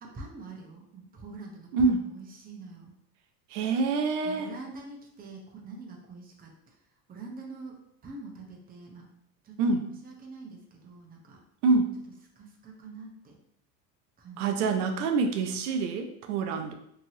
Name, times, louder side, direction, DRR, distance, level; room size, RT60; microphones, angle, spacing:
voice 1, 0.0-2.9 4.2-6.8 7.1-9.1 9.4-11.4 12.4-13.4 14.2-14.9 15.4-15.5, right 3 dB, 20° right, 0 dB, 0.6 m, -45 dB
voice 2, 3.5-4.5 9.6-9.9 11.6-11.9 14.4-16.7, right 4 dB, 75° right, 5 dB, 0.6 m, -26 dB
2.9 x 2.7 x 2.7 m, 0.72 s
supercardioid pair, 100°, 45 cm